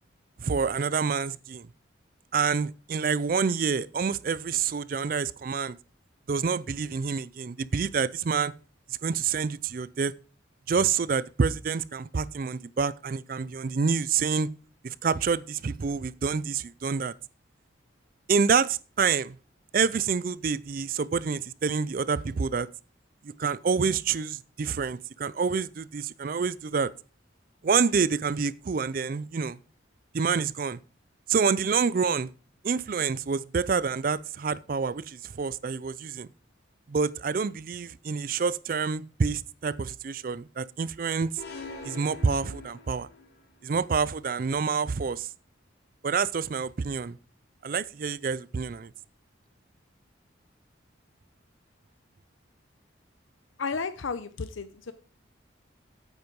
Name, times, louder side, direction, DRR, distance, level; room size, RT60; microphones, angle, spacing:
voice 1, 0.4-1.7 2.3-5.8 6.3-8.5 9.0-10.1 10.7-14.5 14.8-17.1 18.3-19.4 19.7-22.7 23.4-26.9 27.6-29.6 30.1-30.8 31.3-32.3 32.6-36.3 36.9-41.3 41.8-43.1 43.6-45.3 46.0-47.2 47.6-48.9, right 5 dB, 45° right, 0.4 m, -27 dB
sound 1, 41.4-43.4, left 3 dB, 55° left, 2.5 m, -42 dB
voice 2, 53.6-54.9, left 4 dB, 85° left, 0.7 m, -33 dB
9.2 x 8.1 x 5.2 m
head